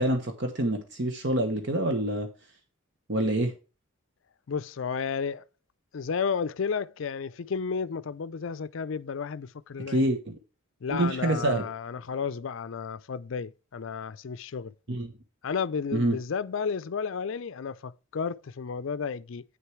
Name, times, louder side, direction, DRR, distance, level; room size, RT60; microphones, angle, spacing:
voice 1, 0.0-2.3 3.1-3.5 9.9-10.4 10.9-11.6 14.9-15.1 15.9-16.2, right 1 dB, 55° right, 1.1 m, -26 dB
voice 2, 4.5-5.5 5.9-10.1 10.8-15.0 15.4-19.4, left 6 dB, 65° left, 0.4 m, -32 dB
9.1 x 6.6 x 4.5 m
head